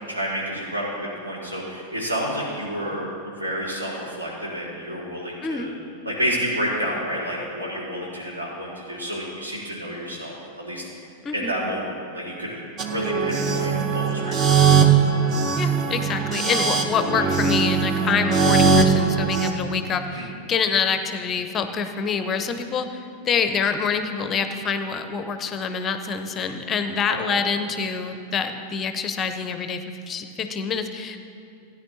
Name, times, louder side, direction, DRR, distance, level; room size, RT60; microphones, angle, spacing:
voice 1, 0.1-5.7 6.0-10.9 11.3-14.6 16.9-17.4 20.1-20.2 27.3-27.4, equal, 75° right, -5 dB, 3.0 m, -30 dB
sound 1, 12.8-19.5, right 5 dB, 35° right, 0.8 m, -20 dB
voice 2, 15.5-31.2, left 6 dB, 25° left, 8 dB, 0.6 m, -26 dB
16.5 x 9.7 x 2.7 m, 2.5 s
figure-of-eight pair, 90°, 0 cm